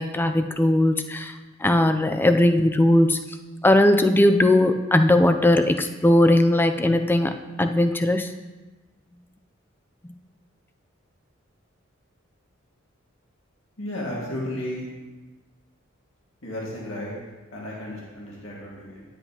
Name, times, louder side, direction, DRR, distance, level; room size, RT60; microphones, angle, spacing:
voice 1, 0.0-1.3 1.6-3.2 3.6-8.3, left 1 dB, 10° left, 8 dB, 0.4 m, -19 dB
voice 2, 13.8-14.9 16.4-17.2 17.5-19.0, left 1 dB, 85° left, -5 dB, 2.0 m, -33 dB
9.8 x 8.0 x 2.9 m, 1.2 s
head